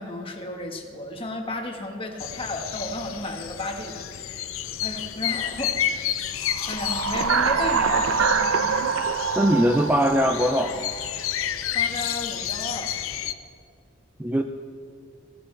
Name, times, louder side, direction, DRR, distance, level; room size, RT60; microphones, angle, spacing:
voice 1, 0.0-4.0 4.8-6.0 6.7-8.3 11.7-12.9, left 1 dB, 25° left, 2 dB, 1.4 m, -33 dB
sound 1, 2.2-13.3, left 10 dB, 75° left, 0.6 m, -31 dB
sound 2, 6.5-11.2, right 6 dB, 70° right, 0.6 m, -25 dB
voice 2, 9.4-10.9 14.2-14.4, equal, 10° right, 5 dB, 0.4 m, -21 dB
20.0 x 15.0 x 3.3 m, 2.2 s
head